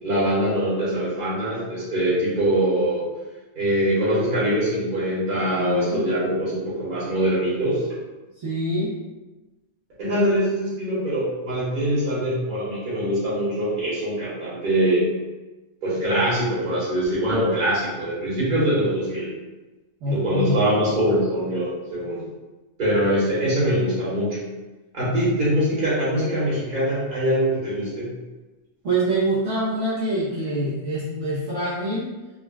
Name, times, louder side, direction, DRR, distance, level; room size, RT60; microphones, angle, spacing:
voice 1, 0.0-3.0 3.5-7.9 10.0-15.1 15.8-19.3 20.1-22.2 22.8-24.4 24.9-28.1, right 1 dB, 40° right, -9 dB, 1.2 m, -23 dB
voice 2, 5.6-6.0 8.4-8.9 20.0-20.7 28.8-32.1, right 1 dB, 65° right, -10 dB, 1.0 m, -25 dB
3.8 x 2.1 x 2.2 m, 1.1 s
omnidirectional pair, 1.5 m